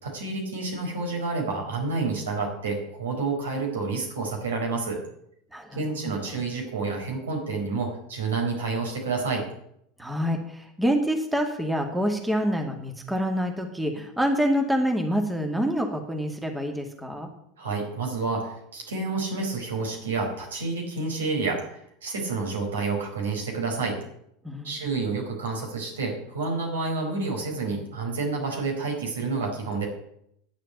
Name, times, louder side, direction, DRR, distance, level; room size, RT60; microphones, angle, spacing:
voice 1, 0.0-5.0 5.7-9.4 17.6-24.0 24.6-29.9, right 3 dB, 80° right, 1 dB, 4.5 m, -29 dB
voice 2, 5.5-5.9 6.3-6.4 10.0-17.3 24.4-25.0, equal, 5° right, 3 dB, 2.2 m, -27 dB
10.5 x 7.4 x 8.2 m, 0.73 s
hypercardioid pair, 85°, 0 cm